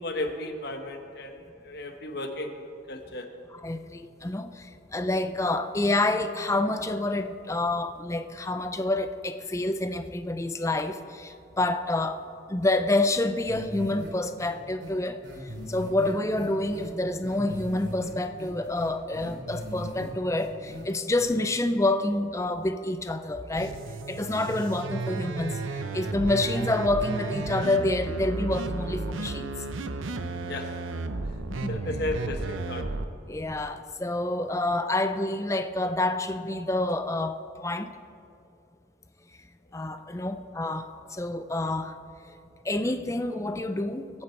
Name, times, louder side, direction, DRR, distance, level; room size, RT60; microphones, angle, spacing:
voice 1, 0.0-2.6 2.9-3.3 30.5-30.7 31.7-32.9, left 1 dB, 55° left, 1.2 m, -34 dB
voice 2, 3.5-15.2 15.7-23.8 24.1-25.6 25.9-29.5 31.6-31.8 33.3-37.9 39.7-42.0 42.6-44.2, left 2 dB, 15° left, 0.5 m, -28 dB
sound 1, 13.5-14.1 14.4-14.5 14.8-14.9 15.2-16.9 17.2-18.1 18.4-20.1 20.4-20.8 21.2-21.3, equal, 60° right, 3.3 m, -39 dB
sound 2, 23.6-33.1, right 3 dB, 85° right, 0.8 m, -33 dB
23.0 x 8.6 x 4.5 m
head